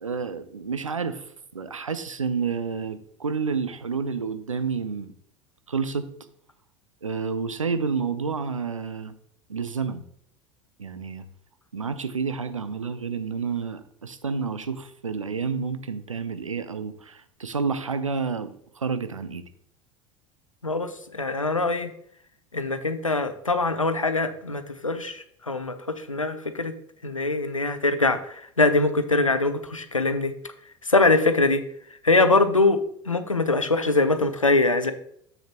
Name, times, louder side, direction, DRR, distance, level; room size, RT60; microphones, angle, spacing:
voice 1, 0.0-1.2 1.5-5.1 5.7-6.1 7.0-9.1 9.5-10.0 10.8-11.2 11.7-19.4, right 5 dB, 80° right, 11 dB, 0.6 m, -29 dB
voice 2, 20.6-21.9 22.5-26.7 27.0-30.3 30.9-31.6 32.0-32.8 33.1-34.9, left 3 dB, 90° left, 10 dB, 0.6 m, -23 dB
7.2 x 6.4 x 3.0 m, 0.68 s
figure-of-eight pair, 75°, 16 cm